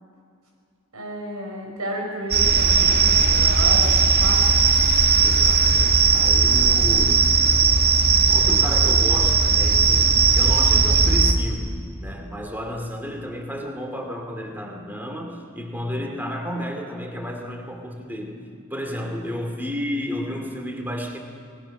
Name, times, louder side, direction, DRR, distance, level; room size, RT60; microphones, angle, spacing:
voice 1, 0.9-4.5, equal, 85° right, 1 dB, 6.2 m, -32 dB
sound 1, 2.3-11.3, right 5 dB, 45° right, 1.8 m, -17 dB
voice 2, 5.2-7.3 8.3-18.4 18.7-21.2, equal, 10° right, 2 dB, 2.4 m, -32 dB
28.0 x 19.0 x 6.4 m, 2.3 s
head